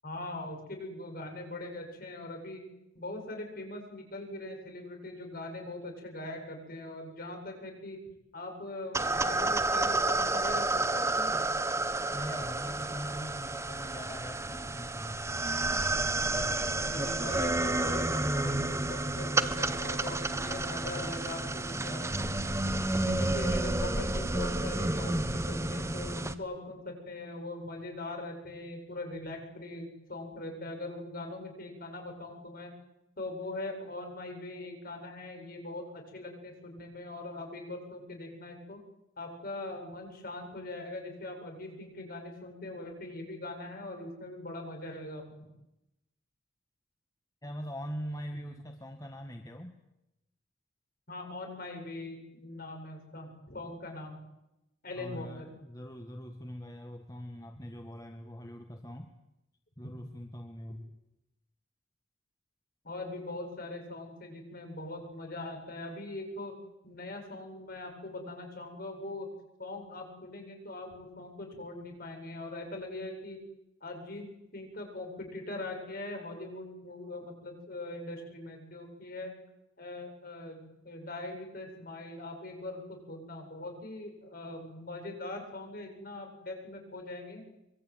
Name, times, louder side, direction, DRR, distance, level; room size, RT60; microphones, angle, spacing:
voice 1, 0.0-2.6 2.9-8.0 8.3-11.4 16.8-22.4 23.0-32.7 33.2-38.8 39.2-45.5 51.1-54.2 54.8-55.5 59.8-59.9 62.8-66.6 66.8-69.3 69.6-73.4 73.8-74.3 74.5-79.3 79.8-87.4, left 2 dB, 45° left, 3 dB, 7.9 m, -41 dB
sound 1, 8.9-26.3, right 2 dB, 15° right, 1.2 m, -30 dB
voice 2, 12.1-15.3 20.4-21.4 21.9-22.3 23.1-24.0 47.4-49.7 55.0-59.1 59.8-60.9, equal, 20° left, 5 dB, 1.6 m, -42 dB
25.0 x 24.0 x 9.3 m, 0.92 s
head